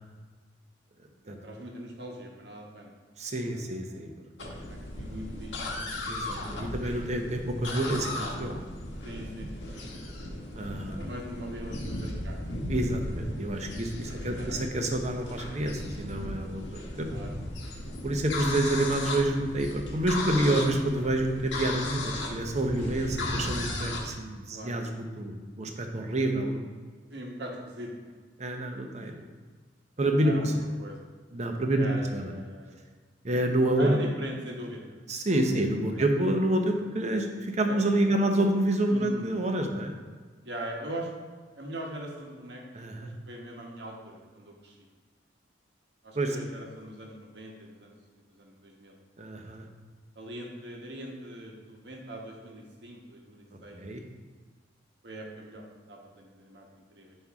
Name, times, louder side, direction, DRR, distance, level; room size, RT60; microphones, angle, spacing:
voice 1, 1.2-2.9 3.5-4.0 4.5-5.9 6.3-7.0 9.0-10.5 10.9-12.5 14.0-14.7 17.0-17.3 21.3-21.5 24.5-24.7 27.1-28.1 30.2-30.5 30.8-31.0 31.8-32.8 33.8-35.0 35.4-35.6 35.9-36.0 37.7-37.8 38.0-38.2 38.9-39.2 40.4-41.1 41.6-42.6 43.0-44.8 46.0-48.9 50.1-53.8 55.0-57.2, right 1 dB, 65° right, 0 dB, 1.2 m, -41 dB
voice 2, 3.2-4.1 4.4-4.5 6.1-8.6 10.5-11.0 12.7-17.1 18.0-26.7 28.4-29.1 30.0-30.5 31.3-31.9 32.1-32.3 33.2-34.0 35.1-39.9 42.7-43.1 46.1-46.4 49.2-49.6 53.7-54.0, right 1 dB, 35° right, 4 dB, 0.7 m, -28 dB
sound 1, 4.4-24.1, left 1 dB, 75° left, 1.2 m, -36 dB
7.4 x 5.4 x 3.6 m, 1.5 s
head